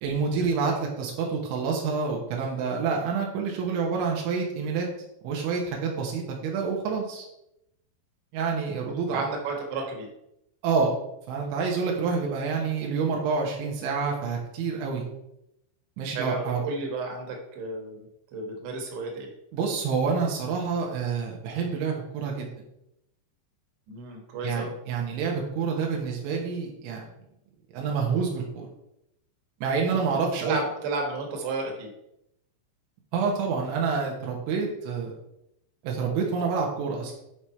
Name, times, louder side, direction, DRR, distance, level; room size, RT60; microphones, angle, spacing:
voice 1, 0.0-4.9 5.2-7.3 8.3-9.2 10.6-10.9 11.3-15.1 16.0-16.6 19.5-22.5 24.4-27.1 27.7-28.7 29.6-30.6 33.1-35.1 35.8-37.1, right 5 dB, 85° right, -1 dB, 3.6 m, -28 dB
voice 2, 8.9-10.1 16.1-18.1 18.3-19.3 23.9-24.7 30.4-31.9, right 3 dB, 70° right, 1 dB, 3.5 m, -32 dB
8.9 x 5.0 x 4.4 m, 0.83 s
omnidirectional pair, 5.3 m